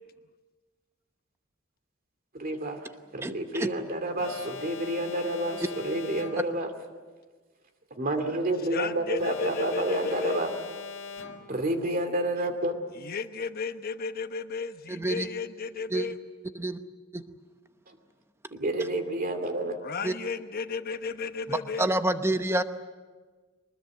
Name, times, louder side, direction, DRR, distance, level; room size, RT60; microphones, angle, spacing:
voice 1, 2.3-2.8 3.1-6.7 7.9-10.5 11.5-12.7 17.9-18.0 18.5-19.8, right 1 dB, 45° right, 6 dB, 2.4 m, -29 dB
voice 2, 3.2-3.7 14.9-15.3 15.9-16.1 16.5-16.8 17.1-17.2 20.0-20.1 21.5-22.6, right 1 dB, 10° right, 9 dB, 0.9 m, -28 dB
Alarm, 4.2-6.7 9.2-11.7, left 5 dB, 65° left, 1.9 m, -41 dB
voice 3, 8.7-10.4 13.0-16.1 19.8-21.9, left 5 dB, 45° left, 9 dB, 1.0 m, -34 dB
23.5 x 20.5 x 7.8 m, 1.4 s
head